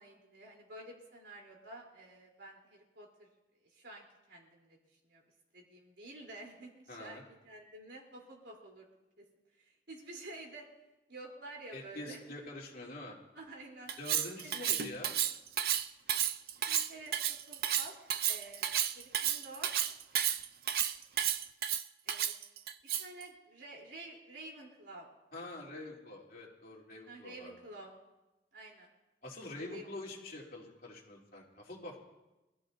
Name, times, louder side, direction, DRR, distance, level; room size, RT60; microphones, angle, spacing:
voice 1, 0.0-3.3 3.7-4.8 5.0-5.2 5.5-8.9 9.2-9.3 9.6-10.7 11.1-12.2 13.3-13.9 14.4-14.7 16.7-17.9 18.2-19.8 22.0-22.3 23.0-25.1 25.3-25.6 27.1-27.9 28.5-28.9 29.7-30.2, right 2 dB, 80° right, -1 dB, 3.7 m, -50 dB
voice 2, 6.9-7.2 11.7-13.2 14.0-15.2 25.3-27.6 29.2-32.0, left 2 dB, 50° left, -4 dB, 3.4 m, -45 dB
Cutlery silverware, 13.9-23.2, right 10 dB, 55° right, 0.5 m, -32 dB
25.0 x 14.5 x 2.8 m, 1.0 s
head